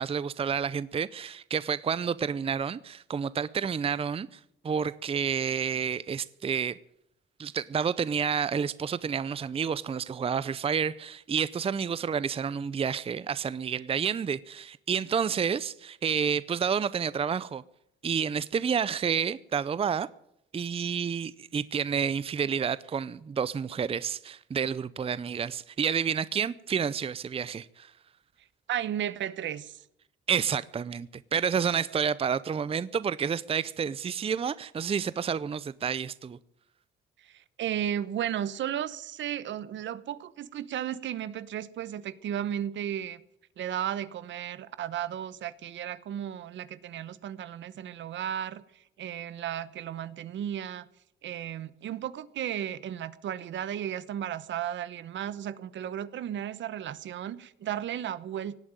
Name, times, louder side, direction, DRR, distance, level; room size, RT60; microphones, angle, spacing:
voice 1, 0.0-4.4 4.6-6.8 7.4-17.6 18.0-20.1 20.5-27.9 30.3-36.4, right 7 dB, 30° right, 0.5 m, -29 dB
voice 2, 28.7-29.8 37.2-43.2 43.6-50.9 51.2-58.6, right 10 dB, 70° right, 0.9 m, -34 dB
18.0 x 8.9 x 8.9 m
cardioid pair, 90°, 20 cm